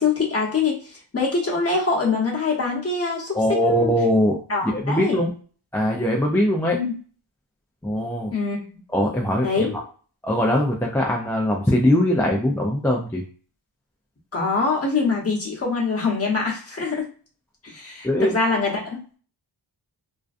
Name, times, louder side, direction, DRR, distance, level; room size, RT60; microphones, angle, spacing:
voice 1, 0.0-3.9 4.5-5.3 6.7-6.9 8.3-8.7 9.4-9.8 14.3-17.1 17.6-19.2, left 4 dB, 35° left, -3 dB, 0.9 m, -24 dB
voice 2, 3.3-5.3 5.7-6.8 7.8-8.3 8.9-9.8 10.2-13.2 18.0-18.3, equal, 5° left, -1 dB, 0.3 m, -21 dB
2.5 x 2.2 x 2.4 m, 0.40 s
wide cardioid pair, 110°, 44 cm